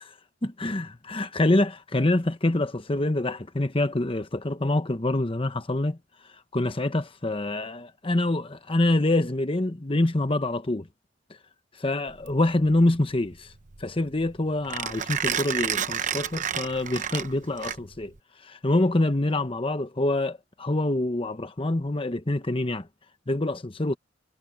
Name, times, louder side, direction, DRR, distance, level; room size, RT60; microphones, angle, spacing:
voice 1, 0.4-6.0 6.5-10.9 11.8-13.5 13.8-18.1 18.4-22.9 23.3-24.0, left 2 dB, 30° left, 1.0 m, -26 dB
Mechanisms, 12.1-18.2, right 8 dB, 40° right, 0.9 m, -31 dB
head